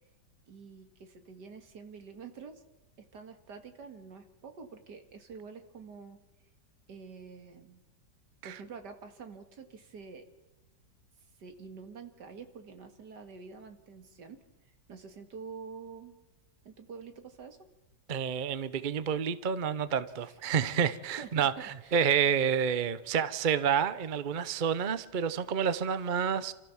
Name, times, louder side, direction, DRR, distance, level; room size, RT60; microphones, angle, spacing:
voice 1, 0.5-2.6 3.0-6.2 6.9-7.8 8.4-10.3 11.4-14.4 14.9-16.2 16.6-17.6 20.2-22.0, right 5 dB, 70° right, 7 dB, 2.4 m, -47 dB
voice 2, 18.1-26.5, right 7 dB, 45° right, 14 dB, 0.7 m, -29 dB
28.0 x 14.0 x 7.1 m, 1.0 s
omnidirectional pair, 1.9 m